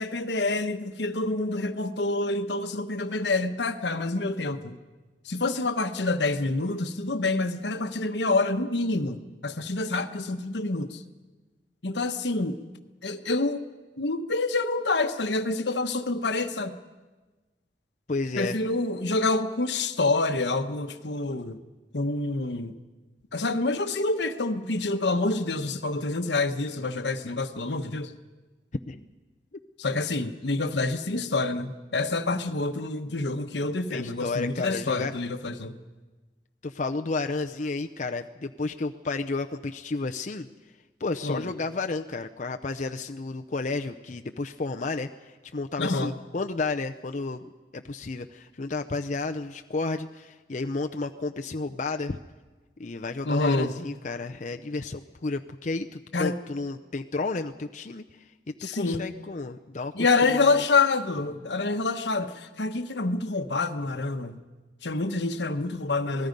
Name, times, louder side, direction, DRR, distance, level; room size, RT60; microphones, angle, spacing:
voice 1, 0.0-4.8 5.3-11.0 11.8-12.6 13.0-13.6 14.0-16.8 18.4-21.6 21.9-22.7 23.3-28.1 29.8-35.8 41.2-41.5 45.8-46.1 53.2-53.7 56.1-56.4 58.6-59.1 59.9-64.4 64.8-66.3, left 3 dB, 80° left, 8 dB, 1.1 m, -27 dB
voice 2, 18.1-18.6 28.9-29.0 33.9-35.1 36.6-40.5 41.0-52.2 52.8-59.9 60.3-60.6, left 3 dB, 45° left, 6 dB, 0.6 m, -32 dB
27.0 x 19.5 x 5.3 m, 1.3 s
head